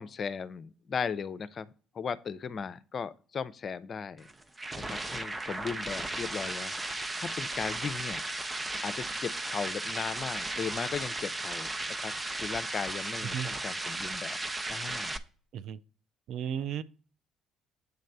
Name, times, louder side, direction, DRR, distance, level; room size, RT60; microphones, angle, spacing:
voice 1, 0.0-1.7 1.9-4.3 4.7-6.7 7.2-8.2 8.8-12.1 12.4-14.4 14.7-15.1, left 6 dB, 45° left, 0.5 m, -37 dB
sound 1, 4.2-15.2, right 2 dB, 20° right, 0.7 m, -35 dB
voice 2, 16.3-16.8, right 9 dB, 60° right, 0.4 m, -34 dB
8.1 x 3.2 x 5.3 m
hypercardioid pair, 55°, 0 cm